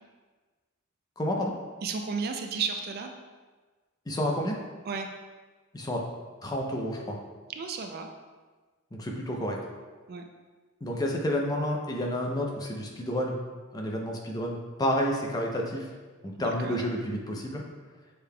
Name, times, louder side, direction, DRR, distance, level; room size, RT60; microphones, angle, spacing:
voice 1, 1.2-1.5 4.1-4.6 5.7-6.0 6.4-7.2 8.9-9.6 10.8-13.4 13.7-15.9 16.2-17.6, equal, 15° left, 0 dB, 0.5 m, -30 dB
voice 2, 1.8-3.1 4.9-5.1 7.5-8.1 10.1-10.3 16.4-16.8, right 5 dB, 45° right, 5 dB, 0.3 m, -33 dB
6.5 x 3.5 x 2.2 m, 1.3 s
head